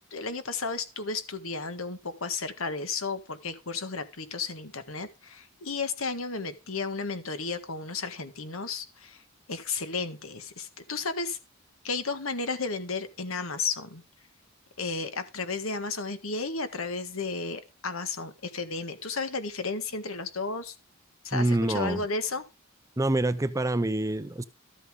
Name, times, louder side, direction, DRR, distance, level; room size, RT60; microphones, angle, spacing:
voice 1, 0.1-9.2 9.5-11.4 11.8-14.0 14.8-20.7 21.2-22.4, left 4 dB, 70° left, 1.6 m, -33 dB
voice 2, 21.3-22.1 23.0-24.4, right 2 dB, 15° right, 0.5 m, -26 dB
13.0 x 8.2 x 3.7 m
head